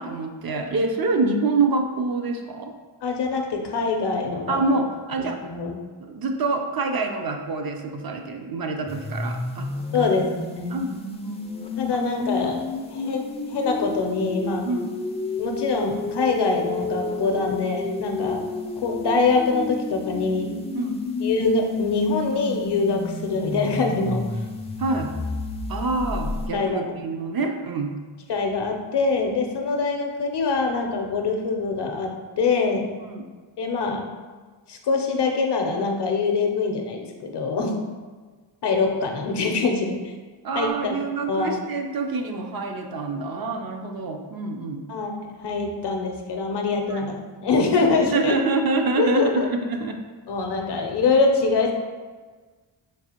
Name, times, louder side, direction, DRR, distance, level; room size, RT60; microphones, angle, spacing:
voice 1, 0.0-2.7 4.5-5.4 6.0-9.7 10.0-10.1 10.7-11.4 11.9-12.0 12.8-13.2 14.7-14.9 18.2-18.3 20.7-21.0 24.8-25.1 25.7-27.9 33.0-33.3 40.4-44.9 46.9-47.1 48.1-50.0, right 3 dB, 50° right, 4 dB, 0.5 m, -26 dB
voice 2, 3.0-4.6 5.5-5.8 9.9-10.8 11.8-12.6 12.9-13.2 13.5-14.7 15.4-18.4 18.8-20.6 21.2-24.2 26.5-26.8 28.3-32.9 33.6-34.1 34.7-37.7 38.6-40.0 40.6-40.9 41.3-41.6 44.9-45.1 45.4-47.2 47.4-48.4 49.0-49.5 50.3-51.7, left 4 dB, 60° left, 3 dB, 0.6 m, -24 dB
sound 1, 8.9-26.5, left 3 dB, 15° left, 0.3 m, -31 dB
4.6 x 2.4 x 2.8 m, 1.4 s
wide cardioid pair, 85°, 48 cm